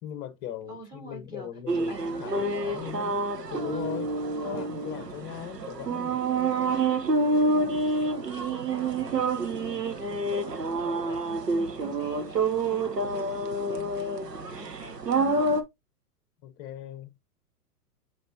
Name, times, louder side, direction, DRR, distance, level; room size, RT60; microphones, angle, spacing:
voice 1, 0.0-3.2 3.5-4.1 4.4-6.2 16.4-17.1, left 11 dB, 30° left, 1.0 m, -39 dB
voice 2, 0.7-2.9 4.4-4.6 7.4-7.7 8.3-15.4, right 2 dB, 10° right, 3.0 m, -46 dB
sound 1, 1.7-15.6, right 3 dB, 85° right, 1.2 m, -28 dB
7.6 x 5.0 x 2.8 m
figure-of-eight pair, 110°, 47 cm